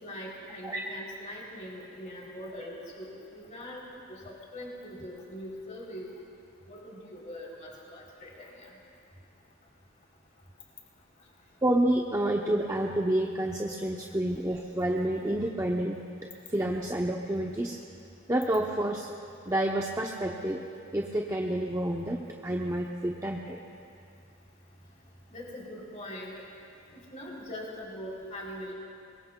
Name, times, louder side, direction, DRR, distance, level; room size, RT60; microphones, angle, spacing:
voice 1, 0.0-6.1 6.7-8.7 25.3-26.4 26.9-28.7, equal, 35° left, -3 dB, 3.2 m, -42 dB
voice 2, 11.6-16.0 16.5-17.8 18.3-19.1 19.5-20.6 20.9-23.6, right 1 dB, 15° right, -1 dB, 0.7 m, -29 dB
23.5 x 22.0 x 2.2 m, 2.5 s
head